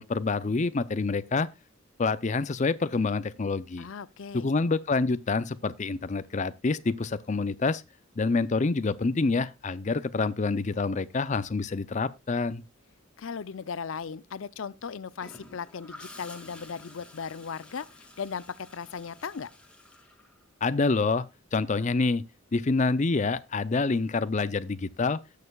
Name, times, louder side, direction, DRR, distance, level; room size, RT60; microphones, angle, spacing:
voice 1, 0.0-1.5 2.0-3.9 4.3-7.8 8.2-12.6 20.6-21.2 21.5-22.2 22.5-25.2, left 3 dB, 35° left, 0.5 m, -27 dB
voice 2, 3.8-4.5 13.2-19.5, left 6 dB, 80° left, 0.5 m, -37 dB
Gurgling / Toilet flush, 15.2-20.9 22.9-23.2, left 2 dB, 5° left, 2.0 m, -50 dB
17.5 x 6.6 x 2.3 m
head